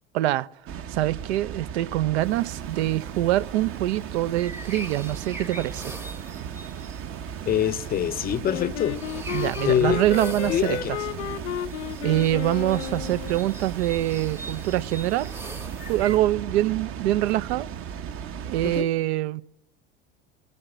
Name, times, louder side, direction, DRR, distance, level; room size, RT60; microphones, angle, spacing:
voice 1, 0.1-0.5 0.9-6.0 9.3-11.0 12.0-15.3 15.9-17.7 18.4-19.4, right 15 dB, 75° right, 0.5 m, -24 dB
Water, 0.7-18.8, right 8 dB, 40° right, 0.8 m, -36 dB
sound 1, 2.2-16.2, right 2 dB, 5° right, 0.8 m, -43 dB
voice 2, 7.5-9.0 9.7-10.0 10.4-10.9 18.6-18.9, left 10 dB, 25° left, 0.5 m, -24 dB
Wind instrument woodwind instrument, 8.4-13.5, left 13 dB, 80° left, 0.5 m, -33 dB
17.5 x 8.7 x 8.9 m
hypercardioid pair, 85°, 34 cm